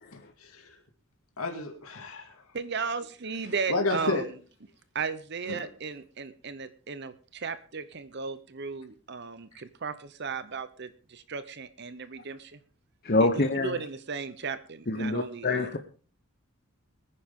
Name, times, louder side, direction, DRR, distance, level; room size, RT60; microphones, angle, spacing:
voice 1, 0.1-0.7 1.4-2.3 3.7-4.2 5.5-5.6, left 3 dB, 80° left, 3 dB, 2.3 m, -31 dB
voice 2, 2.5-4.2 4.9-12.6 13.2-15.7, right 5 dB, 50° right, 13 dB, 0.8 m, -35 dB
voice 3, 13.0-13.7 14.9-15.8, left 2 dB, 45° left, 7 dB, 1.0 m, -25 dB
22.5 x 9.8 x 3.7 m, 0.39 s
head